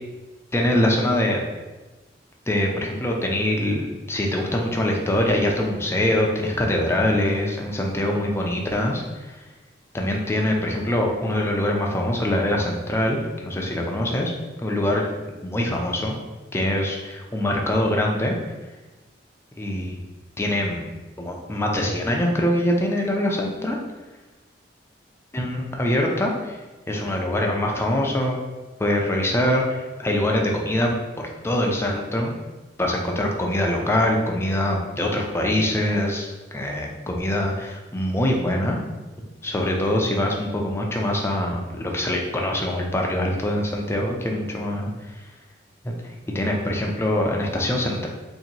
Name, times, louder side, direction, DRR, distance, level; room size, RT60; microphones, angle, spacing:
voice 1, 0.5-1.4 2.5-9.4 9.9-14.3 14.6-15.0 15.4-16.2 16.5-18.3 19.6-20.0 20.4-20.9 21.2-23.8 25.3-26.6 26.9-28.4 28.8-30.9 31.2-32.3 32.8-38.8 39.4-44.9 45.8-48.1, left 1 dB, 15° left, 0 dB, 0.4 m, -24 dB
2.8 x 2.6 x 3.9 m, 1.2 s
head